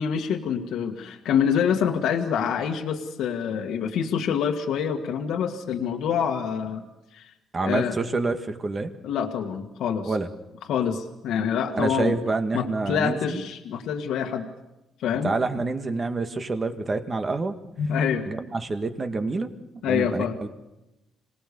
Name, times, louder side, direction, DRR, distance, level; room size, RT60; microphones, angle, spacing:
voice 1, 0.0-6.9 7.1-7.3 7.6-8.0 9.0-10.1 10.7-12.2 12.5-14.5 15.0-15.3 17.8-18.2 19.8-20.4, left 7 dB, 80° left, 3 dB, 1.7 m, -26 dB
voice 2, 7.5-8.9 10.1-10.3 11.7-13.4 15.2-17.5 18.3-19.5 19.8-20.5, right 3 dB, 30° right, 7 dB, 1.9 m, -27 dB
26.5 x 18.5 x 6.9 m, 0.95 s
cardioid pair, 95°, 0 cm